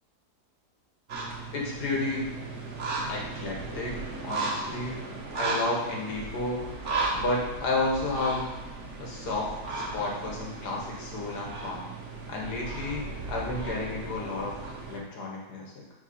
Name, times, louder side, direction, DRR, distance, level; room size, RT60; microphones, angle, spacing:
sound 1, 1.1-15.0, right 3 dB, 50° right, 1.4 m, -35 dB
voice 1, 1.5-2.3 3.1-4.0 4.2-5.0 5.3-6.6 7.1-8.5 9.0-11.9 12.3-14.6 14.9-15.7, left 2 dB, 90° left, -2 dB, 2.2 m, -31 dB
7.0 x 4.4 x 5.5 m, 1.0 s
omnidirectional pair, 1.7 m